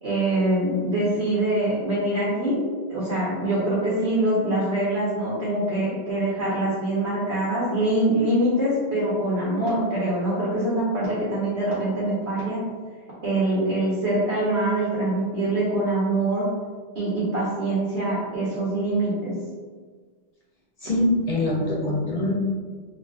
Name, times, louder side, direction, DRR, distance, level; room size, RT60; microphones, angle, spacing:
voice 1, 0.0-2.6 2.9-12.7 13.2-16.5 16.9-19.4, right 1 dB, 75° right, -8 dB, 1.1 m, -24 dB
voice 2, 20.8-22.4, left 1 dB, 45° left, -5 dB, 0.6 m, -23 dB
2.5 x 2.4 x 3.4 m, 1.5 s
omnidirectional pair, 1.1 m